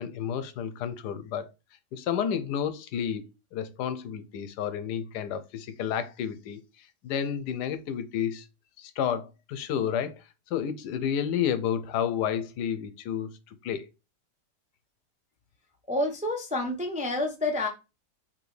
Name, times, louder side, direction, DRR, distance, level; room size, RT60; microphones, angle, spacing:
voice 1, 0.0-1.5 1.9-6.6 7.0-8.5 8.8-13.3 13.6-13.9, left 8 dB, 85° left, 1.2 m, -31 dB
voice 2, 15.9-17.7, left 2 dB, 10° right, 0.4 m, -28 dB
5.0 x 3.2 x 3.2 m
omnidirectional pair, 1.7 m